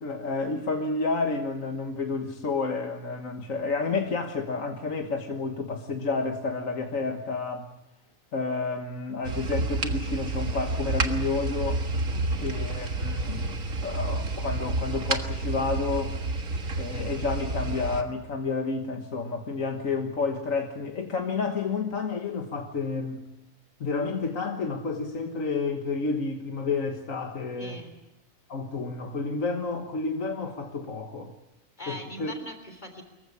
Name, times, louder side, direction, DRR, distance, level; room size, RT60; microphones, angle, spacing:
voice 1, 0.0-7.7 8.3-11.8 12.4-13.6 13.8-16.2 16.8-23.2 23.8-27.8 28.5-31.3 31.9-32.4, left 4 dB, 70° left, 1.9 m, -30 dB
sound 1, 9.3-18.0, right 2 dB, 75° right, 2.1 m, -30 dB
voice 2, 12.1-12.6 27.6-28.0 31.8-33.0, equal, 35° left, 3.5 m, -41 dB
25.0 x 15.0 x 9.9 m
omnidirectional pair, 1.4 m